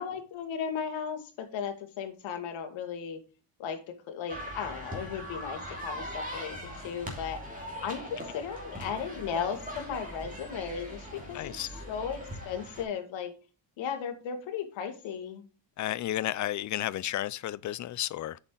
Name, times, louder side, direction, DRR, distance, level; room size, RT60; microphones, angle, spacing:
voice 1, 0.0-3.2 3.6-6.5 6.8-7.4 7.8-13.3 13.8-15.5, left 7 dB, 75° left, 2.0 m, -36 dB
sound 1, 4.3-12.8, equal, 15° right, 2.7 m, -40 dB
voice 2, 11.3-11.7 15.8-18.4, left 13 dB, 40° left, 0.4 m, -32 dB
8.0 x 6.2 x 3.8 m
cardioid pair, 120°, 46 cm